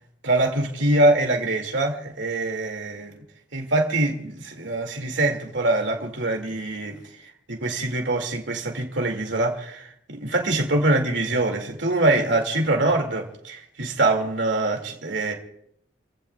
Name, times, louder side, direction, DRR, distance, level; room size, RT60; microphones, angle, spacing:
voice 1, 0.2-3.2 3.5-7.0 7.5-15.3, right 2 dB, 80° right, 2.4 m, -24 dB
30.0 x 16.0 x 2.4 m
head